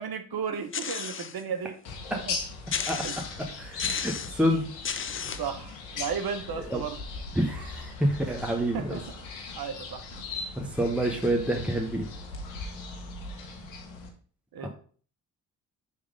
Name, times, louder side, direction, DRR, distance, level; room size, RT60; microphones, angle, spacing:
voice 1, 0.0-1.8 2.2-2.4 3.0-3.2 5.4-7.0 8.7-9.0 9.5-10.0 14.5-14.7, right 6 dB, 55° right, 8 dB, 0.9 m, -34 dB
sound 1, 0.7-1.4 1.9-2.0 2.7-3.4 3.8-4.4 4.8-5.5, left 7 dB, 30° left, 0.5 m, -33 dB
sound 2, 1.8-14.1, left 4 dB, 85° left, 1.1 m, -39 dB
voice 2, 3.6-4.7 6.7-6.8 7.4-9.0 10.6-12.1 14.6-14.7, equal, 5° right, 1 dB, 1.2 m, -27 dB
5.5 x 3.5 x 5.0 m, 0.43 s
hypercardioid pair, 45°, 44 cm